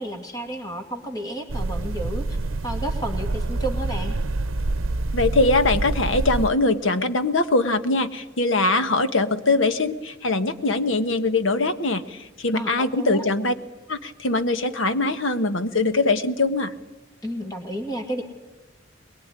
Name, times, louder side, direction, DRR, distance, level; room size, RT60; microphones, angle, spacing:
voice 1, 0.0-2.2 2.6-4.2 12.5-13.2 17.2-18.2, right 1 dB, 20° left, 4 dB, 2.3 m, -31 dB
sound 1, 1.5-6.5, right 2 dB, 85° right, 0.8 m, -26 dB
voice 2, 5.1-13.5 13.9-16.7, left 2 dB, 75° left, 10 dB, 1.3 m, -22 dB
22.0 x 22.0 x 9.7 m, 1.1 s
head